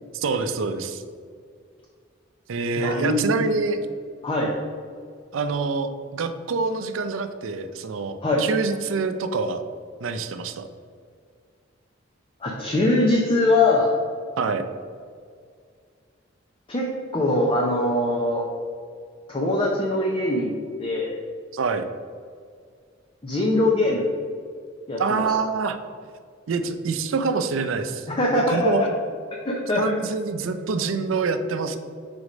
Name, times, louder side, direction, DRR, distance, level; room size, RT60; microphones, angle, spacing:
voice 1, 0.1-1.0 2.5-3.8 5.3-9.6 10.0-10.7 14.4-14.6 21.5-21.9 25.0-25.8 26.5-28.1 28.3-28.9 29.8-31.8, right 4 dB, 80° right, 9 dB, 0.5 m, -26 dB
voice 2, 2.8-3.5 4.2-4.5 8.2-8.5 12.4-13.9 16.7-18.5 19.3-20.5 20.8-21.1 23.2-24.1 24.9-25.3 28.1-28.9 29.4-30.0, left 2 dB, 25° left, -1 dB, 0.6 m, -22 dB
4.8 x 4.2 x 5.1 m, 2.1 s
head